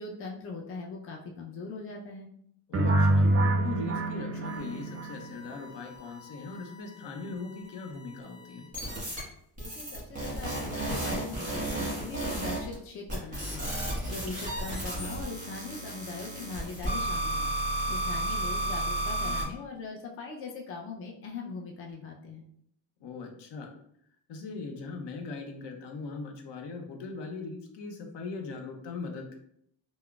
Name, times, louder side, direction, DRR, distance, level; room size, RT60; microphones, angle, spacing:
voice 1, 0.0-2.3 9.6-17.5 17.9-22.4, left 4 dB, 30° left, 0 dB, 0.4 m, -41 dB
voice 2, 2.7-3.3 3.6-8.7 19.2-19.5 23.0-23.7 24.3-29.4, left 4 dB, 65° left, 3 dB, 0.7 m, -40 dB
sound 1, 2.7-5.6, right 1 dB, 35° right, 0.4 m, -26 dB
sound 2, 4.5-7.1 7.4-8.0 8.7-9.2 9.6-12.7 13.1-19.4, right 1 dB, 15° right, 1.3 m, -33 dB
3.6 x 2.0 x 2.3 m, 0.69 s
cardioid pair, 110°, 45 cm